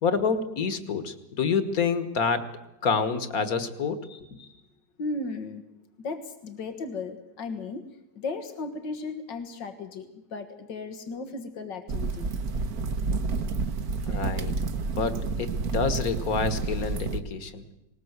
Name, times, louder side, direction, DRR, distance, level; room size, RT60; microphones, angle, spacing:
voice 1, 0.0-2.5 2.8-4.0 4.3-4.4 14.1-14.6 15.0-17.6, left 5 dB, 55° left, 12 dB, 1.8 m, -28 dB
voice 2, 4.0-4.6 5.0-5.6 6.0-7.9 8.2-12.4, left 3 dB, 90° left, 9 dB, 2.2 m, -36 dB
sound 1, 11.9-17.2, right 4 dB, 60° right, 1.5 m, -29 dB
19.5 x 19.5 x 8.0 m, 0.94 s
omnidirectional pair, 1.9 m